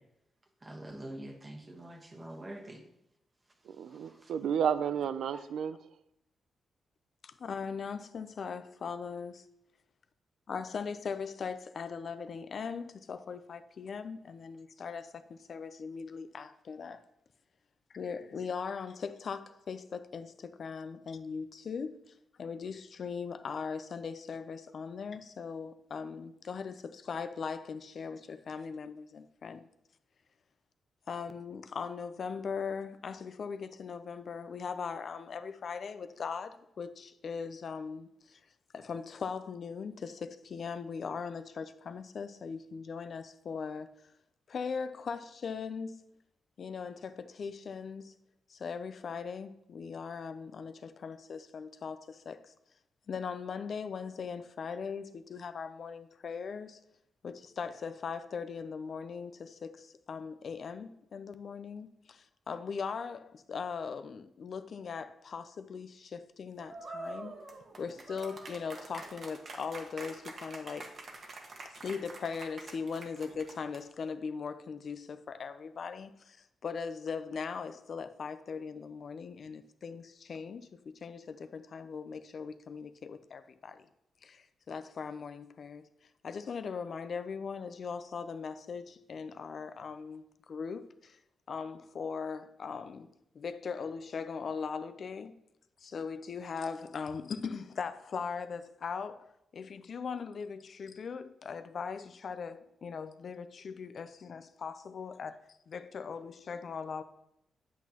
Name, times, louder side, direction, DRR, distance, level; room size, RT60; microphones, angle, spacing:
voice 1, 0.6-2.8 4.2-4.3 5.3-5.4, right 1 dB, 20° right, 1.1 m, -45 dB
voice 2, 3.7-5.8, right 8 dB, 80° right, 0.3 m, -32 dB
voice 3, 7.2-9.5 10.5-17.0 17.9-29.7 31.1-38.4 38.7-43.9 44.5-46.0 46.6-48.1 48.5-52.5 53.1-56.8 57.2-67.3 67.8-71.0 71.6-83.9 84.2-85.9 86.2-91.2 91.5-95.4 95.8-107.0, left 5 dB, 55° left, 0.4 m, -40 dB
sound 1, 66.6-74.0, right 2 dB, 50° right, 1.2 m, -46 dB
8.2 x 8.1 x 2.9 m
cardioid pair, 110°, 0 cm